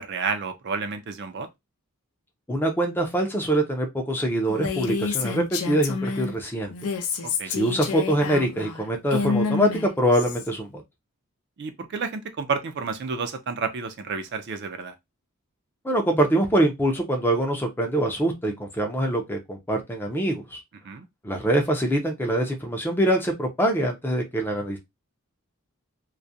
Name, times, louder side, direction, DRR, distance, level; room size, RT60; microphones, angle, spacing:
voice 1, 0.0-1.5 7.2-7.5 11.6-14.9 20.8-21.1, right 5 dB, 50° right, 0.4 m, -30 dB
voice 2, 2.5-6.7 7.4-10.8 15.8-20.6 21.2-24.8, right 1 dB, 10° left, 0.4 m, -24 dB
Female speech woman speaking, 4.5-6.3 6.7-10.5, left 5 dB, 85° left, 0.5 m, -28 dB
2.3 x 2.1 x 2.6 m
head